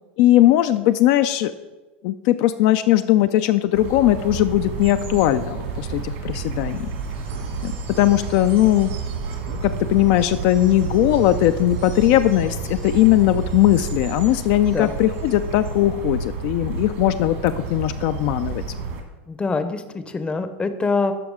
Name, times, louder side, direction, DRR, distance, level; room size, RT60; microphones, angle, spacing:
voice 1, 0.2-1.5 2.0-6.9 7.6-8.9 9.5-18.6, left 14 dB, 55° left, 10 dB, 0.3 m, -19 dB
sound 1, 3.7-19.0, right 5 dB, 70° right, 1.7 m, -30 dB
sound 2, 6.4-15.8, right 5 dB, 85° right, 1.7 m, -50 dB
voice 2, 19.3-21.1, left 4 dB, 15° left, 10 dB, 0.6 m, -24 dB
12.5 x 4.7 x 3.6 m, 1.2 s
hypercardioid pair, 110°, 7 cm